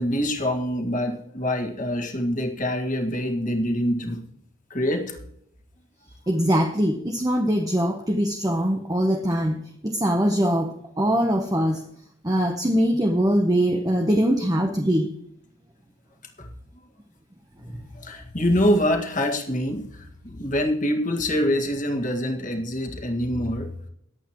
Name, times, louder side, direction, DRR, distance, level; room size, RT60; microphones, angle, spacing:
voice 1, 0.0-4.2 4.7-5.2 16.4-16.5 17.6-23.7, equal, 40° left, 3 dB, 1.8 m, -25 dB
voice 2, 6.3-11.8 12.2-15.1, equal, 15° right, 4 dB, 0.9 m, -22 dB
20.5 x 8.3 x 3.0 m, 0.70 s
head